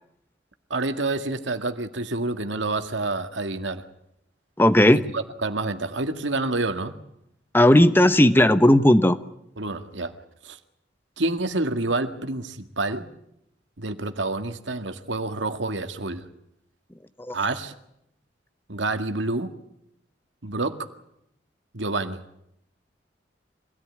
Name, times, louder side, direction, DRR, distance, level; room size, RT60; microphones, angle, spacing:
voice 1, 0.7-3.8 5.1-6.9 9.6-10.1 10.4-10.6 11.2-13.1 13.8-16.2 17.3-17.7 18.7-19.5 20.4-20.9 21.7-22.2, right 2 dB, 85° right, 7 dB, 2.0 m, -28 dB
voice 2, 4.6-5.0 7.5-9.2 17.2-17.3, left 1 dB, 10° left, 11 dB, 0.9 m, -16 dB
25.5 x 17.5 x 9.7 m, 0.77 s
head